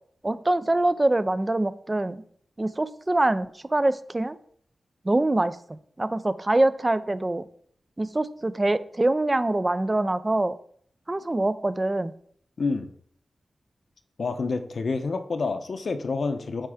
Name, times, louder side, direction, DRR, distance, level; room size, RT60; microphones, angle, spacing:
voice 1, 0.2-2.2 2.6-4.4 5.0-5.6 6.0-7.5 8.0-10.5 11.1-12.1, right 2 dB, 25° right, 14 dB, 0.4 m, -24 dB
voice 2, 12.6-12.9 14.2-16.7, left 4 dB, 65° left, 7 dB, 0.8 m, -28 dB
8.9 x 3.4 x 4.9 m, 0.62 s
wide cardioid pair, 85°, 0 cm